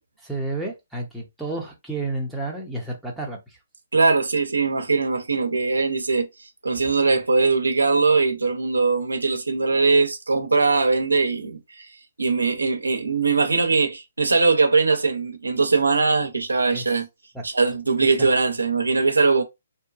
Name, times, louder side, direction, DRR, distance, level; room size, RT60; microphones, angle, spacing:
voice 1, 0.2-3.6 16.7-16.9 17.3-17.4 18.2-18.3, right 2 dB, ahead, 0.8 m, -31 dB
voice 2, 3.9-11.9 12.2-17.1 17.4-19.4, right 4 dB, 90° right, 0.7 m, -21 dB
2.7 x 2.2 x 2.4 m
hypercardioid pair, 140°, 0 cm